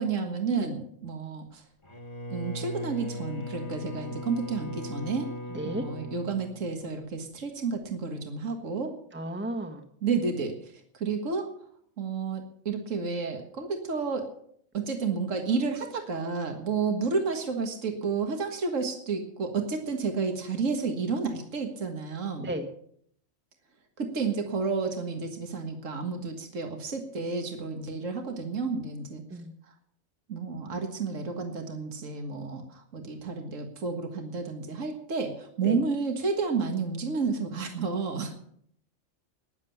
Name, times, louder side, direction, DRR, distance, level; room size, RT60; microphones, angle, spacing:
voice 1, 0.0-1.6 2.3-5.3 5.6-8.9 10.0-11.5 12.0-14.3 14.7-22.5 24.0-29.2 30.3-38.3, right 4 dB, 75° right, 4 dB, 2.0 m, -31 dB
Bowed string instrument, 1.8-7.2, left 1 dB, 20° left, 2.0 m, -39 dB
voice 2, 5.5-5.9 9.1-9.8 22.4-22.7 29.3-29.5 35.6-35.8, right 1 dB, 10° right, 5 dB, 1.4 m, -33 dB
20.0 x 7.5 x 7.1 m, 0.66 s
omnidirectional pair, 1.3 m